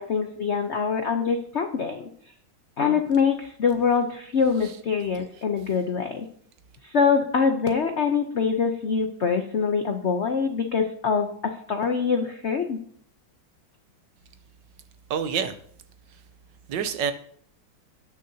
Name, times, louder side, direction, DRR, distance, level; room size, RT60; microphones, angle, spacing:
voice 1, 0.0-2.1 2.8-6.3 6.8-12.8, left 6 dB, 65° left, 6 dB, 0.6 m, -24 dB
voice 2, 15.1-15.6 16.7-17.1, right 7 dB, 70° right, 10 dB, 1.3 m, -26 dB
18.0 x 6.6 x 2.7 m, 0.63 s
omnidirectional pair, 2.2 m